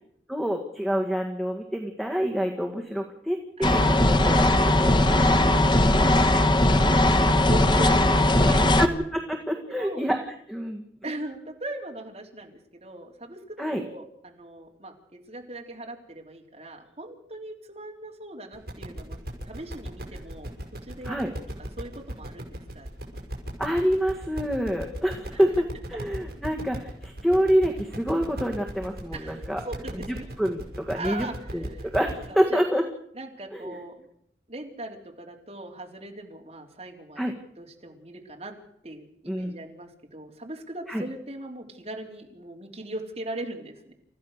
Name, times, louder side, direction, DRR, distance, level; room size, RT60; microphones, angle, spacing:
voice 1, 0.3-4.9 8.8-10.8 13.6-13.8 21.0-21.3 23.6-25.6 25.9-29.6 29.9-31.3 31.5-32.8 33.5-33.8 37.2-37.3 39.3-39.6 40.9-41.0, equal, ahead, 3 dB, 1.7 m, -27 dB
sound 1, 3.6-8.9, left 1 dB, 25° left, 1.1 m, -19 dB
voice 2, 3.6-4.2 4.9-8.9 9.7-10.0 11.0-19.2 19.4-20.5 20.8-21.3 21.6-22.5 22.8-22.9 25.3-25.5 29.1-30.3 30.9-31.9 32.3-32.6 33.1-34.1 34.5-38.5 38.8-43.9, right 1 dB, 35° right, 1 dB, 3.7 m, -40 dB
sound 2, 18.5-32.3, right 1 dB, 60° right, 6.5 m, -37 dB
29.5 x 15.0 x 6.6 m, 0.71 s
head